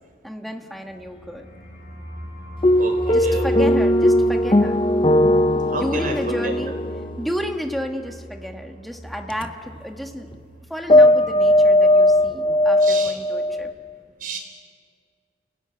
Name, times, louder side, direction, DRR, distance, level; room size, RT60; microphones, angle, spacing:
voice 1, 0.2-1.5 3.1-4.9 5.7-6.7 7.2-13.7, equal, ahead, 3 dB, 1.6 m, -32 dB
sound 1, 0.9-10.6 10.9-11.0 11.3-11.8, equal, 45° left, 6.1 m, -36 dB
sound 2, 2.6-7.7 9.3-9.5 10.9-13.7, left 1 dB, 25° left, 0.7 m, -18 dB
voice 2, 2.8-3.5 5.7-6.2 6.4-6.5 12.8-13.1 14.2-14.4, right 3 dB, 45° right, 3 dB, 4.7 m, -29 dB
29.5 x 18.5 x 9.7 m, 2.2 s
head